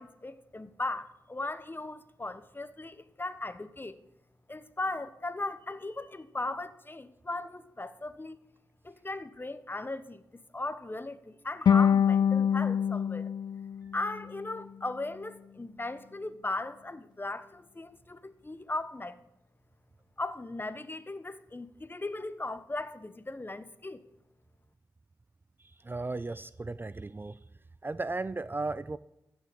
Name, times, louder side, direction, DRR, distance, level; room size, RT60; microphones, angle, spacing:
voice 1, 0.0-3.9 4.5-8.4 8.8-13.3 13.9-19.2 20.2-24.0, left 2 dB, 25° left, 1.2 m, -37 dB
sound 1, 11.7-14.8, left 8 dB, 65° left, 0.4 m, -26 dB
voice 2, 25.6-27.4 27.8-29.0, right 3 dB, 25° right, 0.4 m, -35 dB
15.0 x 6.5 x 8.0 m
supercardioid pair, 40°, 8 cm